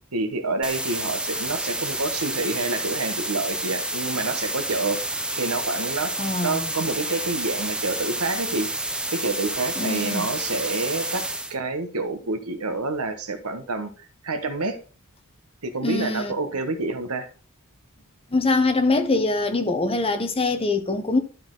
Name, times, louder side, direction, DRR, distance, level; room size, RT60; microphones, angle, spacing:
voice 1, 0.1-5.0 5.4-6.1 6.4-8.7 9.1-11.2 11.5-14.8 15.6-17.3, right 3 dB, 80° right, 1.2 m, -28 dB
sound 1, 0.6-11.6, right 1 dB, 5° right, 0.7 m, -29 dB
voice 2, 6.2-6.7 9.8-10.3 15.8-16.3 18.3-21.2, left 3 dB, 25° left, 1.0 m, -23 dB
12.0 x 4.3 x 3.9 m
head